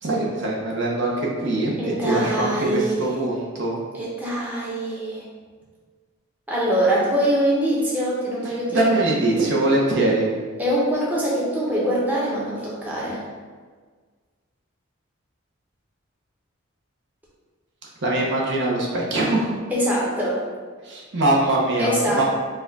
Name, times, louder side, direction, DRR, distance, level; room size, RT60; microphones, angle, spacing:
voice 1, 0.0-3.8 8.7-10.3 18.0-19.5 20.9-22.2, right 2 dB, 55° right, -4 dB, 0.8 m, -22 dB
voice 2, 1.8-3.2 3.9-5.3 6.5-9.0 10.6-13.2 19.7-20.4 21.8-22.2, right 1 dB, 10° right, -7 dB, 0.8 m, -23 dB
4.4 x 2.3 x 4.0 m, 1.5 s
head